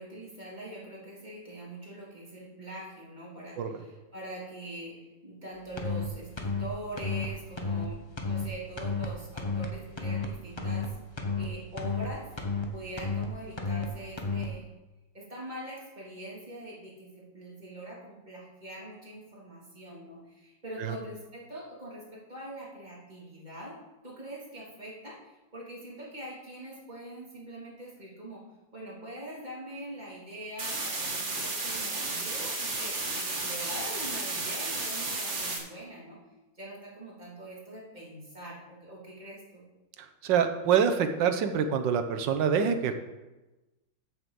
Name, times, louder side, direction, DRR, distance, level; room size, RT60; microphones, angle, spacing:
voice 1, 0.0-11.0 11.4-12.3 12.7-14.7 15.1-23.8 24.0-28.4 28.7-36.2 36.5-39.6, right 1 dB, 25° right, -5 dB, 3.4 m, -43 dB
sound 1, 5.8-6.1 6.4-6.7 7.0-7.3 7.6-7.9 8.2-8.5 8.8-9.1 9.4-9.7 10.0-10.3 10.6-10.9 11.2-11.5 11.8-12.1 12.4-12.7 13.0-13.3 13.6-13.9 14.2-14.5, left 5 dB, 20° left, 0.9 m, -31 dB
sound 2, 30.6-35.6, right 3 dB, 40° right, 1.9 m, -33 dB
voice 2, 40.2-42.9, right 7 dB, 85° right, 8 dB, 1.6 m, -25 dB
7.9 x 6.8 x 7.5 m, 1.1 s
omnidirectional pair, 2.0 m